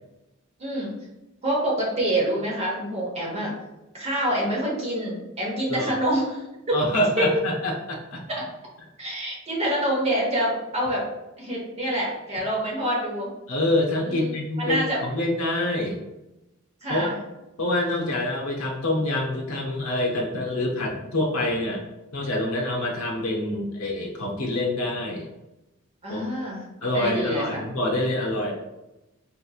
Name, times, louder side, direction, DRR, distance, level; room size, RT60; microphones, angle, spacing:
voice 1, 0.6-0.9 1.4-3.5 3.9-6.8 7.2-7.3 8.3-8.4 9.0-11.0 11.4-13.3 14.0-15.0 16.8-17.2 26.0-26.6 26.9-27.6, right 1 dB, 30° right, -4 dB, 1.0 m, -26 dB
voice 2, 6.7-8.2 13.5-16.0 16.9-17.1 17.6-21.8 22.1-25.3 26.1-26.2 26.8-28.5, left 1 dB, 80° left, -1 dB, 0.6 m, -26 dB
3.6 x 2.9 x 2.3 m, 0.97 s
head